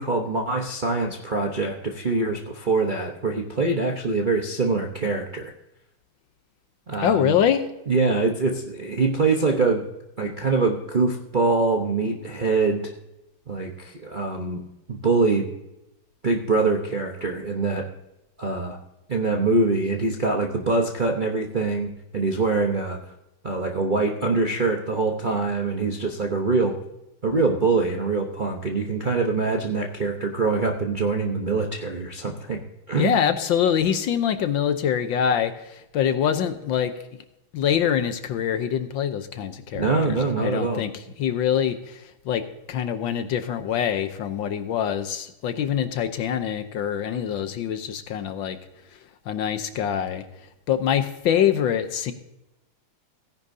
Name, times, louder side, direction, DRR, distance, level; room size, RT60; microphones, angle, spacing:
voice 1, 0.0-5.5 6.9-7.3 7.9-9.8 10.2-12.9 13.5-14.6 14.9-15.5 16.2-17.8 18.4-18.8 19.1-23.0 23.4-26.8 27.2-32.6 32.9-33.2 39.7-40.8, right 3 dB, 40° right, 0 dB, 0.6 m, -24 dB
voice 2, 7.0-7.7 33.0-36.9 37.5-40.9 41.2-42.4 42.7-48.6 49.3-50.2 50.7-52.1, left 9 dB, 70° left, 10 dB, 1.4 m, -24 dB
16.5 x 10.5 x 2.7 m, 0.91 s
omnidirectional pair, 2.4 m